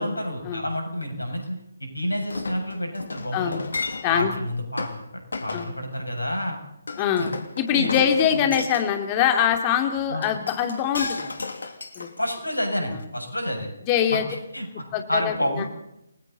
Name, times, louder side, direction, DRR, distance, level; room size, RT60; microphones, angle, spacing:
voice 1, 0.0-3.6 4.0-6.6 7.2-7.3 7.7-8.0 8.3-8.5 10.1-10.3 12.2-13.7 14.1-14.2 14.5-15.7, equal, 80° left, 3 dB, 7.2 m, -29 dB
Chink clink, 2.3-4.3 4.8-5.0 5.3-5.7 6.9-8.9 10.2-12.6 13.0-13.1, left 3 dB, 60° left, 3.0 m, -33 dB
voice 2, 3.3-3.7 4.0-4.3 5.5-5.7 7.0-7.3 7.6-11.3 12.0-12.1 13.9-14.3 14.9-15.4, left 9 dB, 20° left, 5 dB, 2.9 m, -23 dB
29.5 x 21.0 x 4.2 m, 0.82 s
figure-of-eight pair, 145°, 0 cm